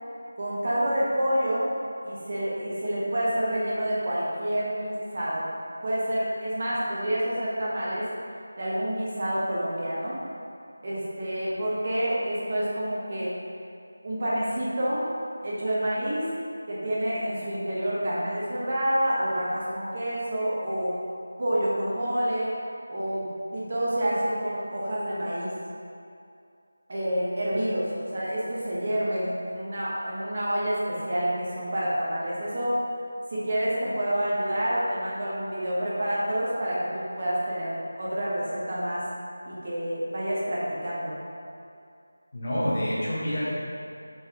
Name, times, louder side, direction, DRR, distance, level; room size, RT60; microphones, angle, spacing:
voice 1, 0.4-1.7 2.0-5.5 5.8-8.0 8.6-10.2 10.8-13.3 14.0-15.1 15.4-16.2 16.7-21.0 21.4-22.6 22.9-25.6 26.9-32.8 33.3-39.1 39.4-41.1, equal, 40° right, -7 dB, 1.0 m, -28 dB
voice 2, 42.3-43.5, equal, 40° left, -8 dB, 1.0 m, -27 dB
4.3 x 3.8 x 2.8 m, 2.5 s
figure-of-eight pair, 170°, 0 cm